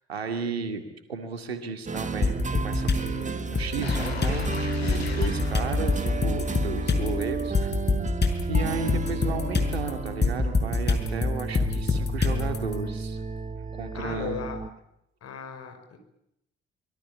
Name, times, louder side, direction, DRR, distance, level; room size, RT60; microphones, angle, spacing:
voice 1, 0.1-7.8 8.5-13.2 13.5-14.4, right 5 dB, 85° right, 7 dB, 2.3 m, -34 dB
sound 1, 1.9-14.7, right 4 dB, 25° right, 1.7 m, -33 dB
sound 2, 2.2-3.1 3.5-12.7, left 4 dB, 35° left, 5.8 m, -26 dB
sound 3, 3.8-6.8 7.2-7.3, left 7 dB, 90° left, 2.1 m, -38 dB
voice 2, 13.9-14.6 15.2-16.0, left 6 dB, 50° left, 6 dB, 5.6 m, -37 dB
25.5 x 22.0 x 8.6 m, 0.81 s
figure-of-eight pair, 45°, 30 cm